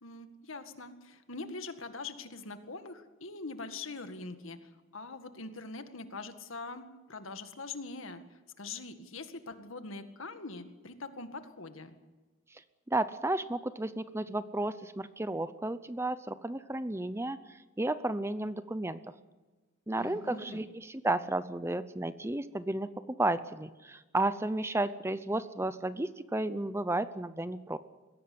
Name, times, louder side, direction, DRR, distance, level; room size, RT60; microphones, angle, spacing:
voice 1, 0.0-11.9 20.0-20.6, left 3 dB, 70° left, 8 dB, 1.9 m, -43 dB
voice 2, 12.9-19.1 19.9-27.8, right 2 dB, 10° right, 14 dB, 0.6 m, -33 dB
22.0 x 16.5 x 9.6 m, 1.3 s
head